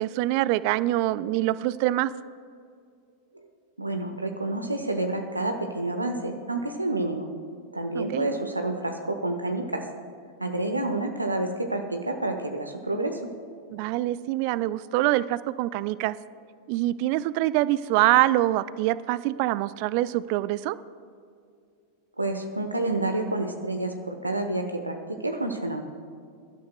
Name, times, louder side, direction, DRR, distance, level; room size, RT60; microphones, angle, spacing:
voice 1, 0.0-2.1 7.9-8.3 13.7-16.2 16.7-20.8, right 16 dB, 45° right, 17 dB, 0.4 m, -25 dB
voice 2, 3.8-7.3 7.7-9.8 10.4-13.2 22.2-25.8, right 2 dB, 85° right, 4 dB, 0.9 m, -29 dB
22.5 x 12.5 x 2.2 m, 2.3 s
figure-of-eight pair, 90°, 0 cm